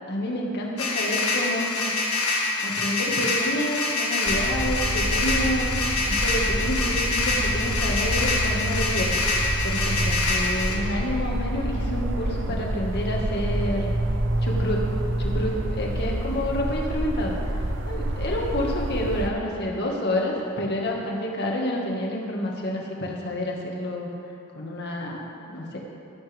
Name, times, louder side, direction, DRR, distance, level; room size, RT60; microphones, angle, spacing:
voice 1, 0.1-1.9 2.6-13.9 14.4-14.8 15.2-17.4 17.9-24.1 24.5-25.8, left 1 dB, 50° left, -1 dB, 1.8 m, -29 dB
sound 1, 0.8-10.8, left 3 dB, 80° left, 1.8 m, -26 dB
sound 2, 4.3-19.3, right 1 dB, 60° right, 0.9 m, -28 dB
15.5 x 12.5 x 3.5 m, 2.8 s
head